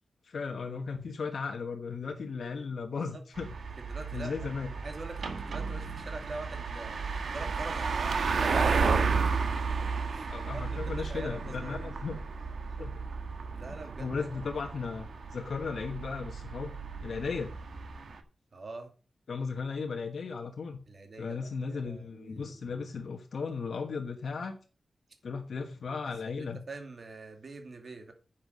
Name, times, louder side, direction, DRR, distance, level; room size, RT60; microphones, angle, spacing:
voice 1, 0.2-3.5 4.1-4.7 10.3-12.2 12.8-13.0 13.7-16.7 17.0-17.5 19.3-20.8 21.2-24.6 25.2-26.6, left 5 dB, 75° left, 3 dB, 1.2 m, -36 dB
sound 1, 3.4-18.2, right 5 dB, 75° right, 1.4 m, -33 dB
voice 2, 3.8-7.0 7.3-9.4 9.8-11.9 13.5-14.3 18.5-18.9 20.9-22.6 26.3-28.1, right 3 dB, 50° right, 5 dB, 2.4 m, -45 dB
9.8 x 7.4 x 5.3 m, 0.37 s
wide cardioid pair, 115°, 0 cm